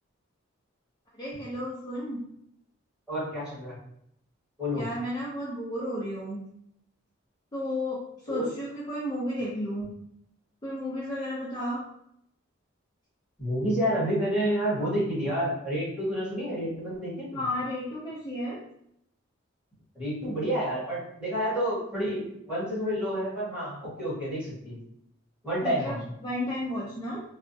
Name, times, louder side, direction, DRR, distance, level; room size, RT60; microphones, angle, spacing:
voice 1, 1.2-2.2 4.7-6.4 7.5-9.9 10.6-11.8 17.3-18.6 25.6-27.2, left 1 dB, 20° left, -8 dB, 0.5 m, -33 dB
voice 2, 3.1-3.7 4.6-4.8 8.3-8.5 13.4-17.4 19.9-24.8 25.4-26.0, equal, 5° right, -10 dB, 1.4 m, -29 dB
3.3 x 2.0 x 2.7 m, 0.75 s
head